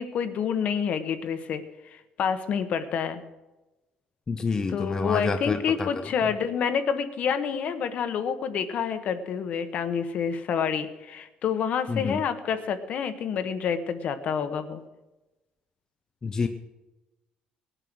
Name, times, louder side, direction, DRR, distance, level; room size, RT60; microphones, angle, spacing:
voice 1, 0.0-1.6 2.2-3.2 4.7-14.8, left 7 dB, 50° left, 10 dB, 1.2 m, -28 dB
voice 2, 4.3-5.9 11.9-12.2 16.2-16.5, left 4 dB, 20° left, 6 dB, 0.6 m, -28 dB
19.0 x 9.1 x 6.2 m, 1.1 s
cardioid pair, 170°, 3 cm